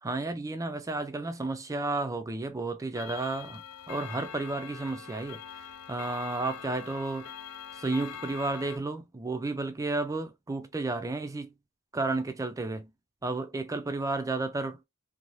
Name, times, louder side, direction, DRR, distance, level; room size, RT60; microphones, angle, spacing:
voice 1, 0.0-7.3 7.7-11.5 11.9-12.9 13.2-14.8, right 3 dB, 15° right, 0.3 m, -32 dB
Clock, 3.0-8.8, left 8 dB, 85° left, 0.4 m, -43 dB
2.6 x 2.1 x 3.0 m
head